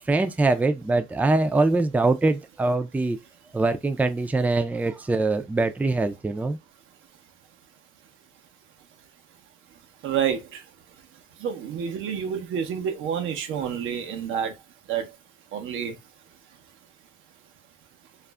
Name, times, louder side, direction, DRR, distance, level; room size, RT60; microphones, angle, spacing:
voice 1, 0.0-3.2 3.5-6.6, right 2 dB, 10° right, 0.3 m, -23 dB
voice 2, 10.0-10.7 11.1-14.6 14.9-15.2 15.5-16.0, right 8 dB, 85° right, 0.7 m, -29 dB
2.4 x 2.0 x 3.2 m
cardioid pair, 90°, 20 cm